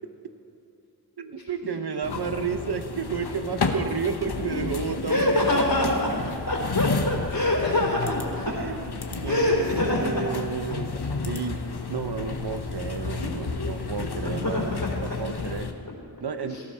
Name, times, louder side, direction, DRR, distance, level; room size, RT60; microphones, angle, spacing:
voice 1, 1.2-5.4 8.5-10.9 11.2-11.6 11.9-15.7 16.2-16.6, right 6 dB, 80° right, 9 dB, 0.9 m, -31 dB
sound 1, 2.0-15.7, left 4 dB, 85° left, 1.1 m, -32 dB
voice 2, 5.1-6.1 6.5-8.5 9.2-10.3 13.6-13.7 14.0-15.2 16.5-16.6, left 1 dB, 60° left, -3 dB, 3.4 m, -25 dB
18.5 x 14.5 x 4.4 m, 2.7 s
wide cardioid pair, 60°, 38 cm